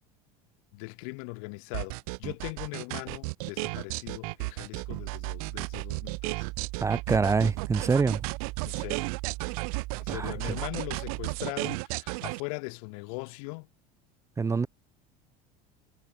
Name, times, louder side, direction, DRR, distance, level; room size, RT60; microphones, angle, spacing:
voice 1, 0.7-6.5 8.6-9.1 10.0-13.7, left 35 dB, 70° left, 1.7 m, -40 dB
sound 1, 1.7-12.4, right 28 dB, 75° right, 3.4 m, -34 dB
sound 2, 4.8-11.6, right 22 dB, 60° right, 2.8 m, -39 dB
voice 2, 6.8-8.2 10.1-10.5 14.4-14.7, right 4 dB, 15° right, 1.1 m, -26 dB
supercardioid pair, 130°, 19 cm